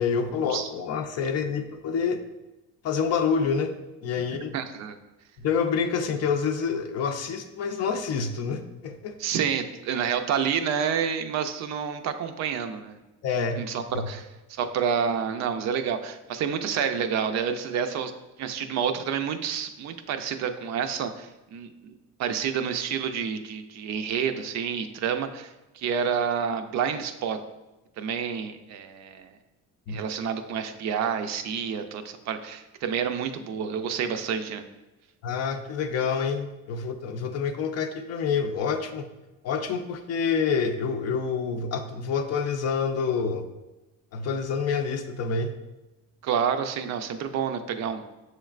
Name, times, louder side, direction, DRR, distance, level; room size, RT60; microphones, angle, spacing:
voice 1, 0.0-2.2 2.8-3.7 4.0-4.5 5.4-9.2 13.2-13.6 13.9-14.1 29.9-30.0 35.2-39.1 39.4-43.5 44.1-45.5, left 6 dB, 50° left, 7 dB, 0.5 m, -27 dB
voice 2, 4.5-5.0 9.2-13.0 13.6-18.1 18.4-27.4 28.0-29.3 29.9-34.7 46.2-48.1, right 7 dB, 55° right, 8 dB, 0.5 m, -29 dB
6.9 x 3.2 x 2.4 m, 1.0 s
cardioid pair, 130°, 33 cm